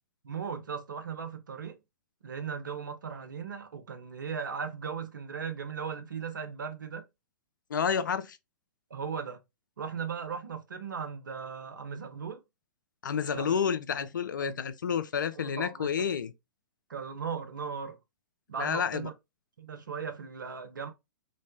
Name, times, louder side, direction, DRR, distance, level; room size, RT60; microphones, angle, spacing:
voice 1, 0.2-1.8 2.2-7.0 8.9-9.4 9.8-12.4 13.3-13.6 14.4-14.5 15.3-16.0 16.9-18.0 18.5-19.1 19.6-20.9, right 6 dB, 75° right, 0.6 m, -37 dB
voice 2, 7.7-8.4 13.0-16.3 18.6-19.1, left 7 dB, 70° left, 0.4 m, -30 dB
3.1 x 2.1 x 2.6 m
figure-of-eight pair, 110°, 11 cm